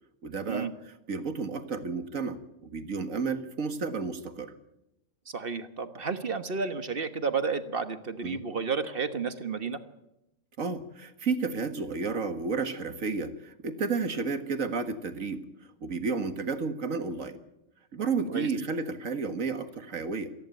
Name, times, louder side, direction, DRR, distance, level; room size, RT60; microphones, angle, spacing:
voice 1, 0.2-4.5 8.2-8.4 10.6-17.4 17.9-20.3, right 4 dB, 80° right, 9 dB, 2.1 m, -32 dB
voice 2, 5.3-9.8 18.3-18.5, right 5 dB, 45° right, 10 dB, 1.5 m, -31 dB
28.0 x 11.0 x 9.2 m, 0.88 s
omnidirectional pair, 1.4 m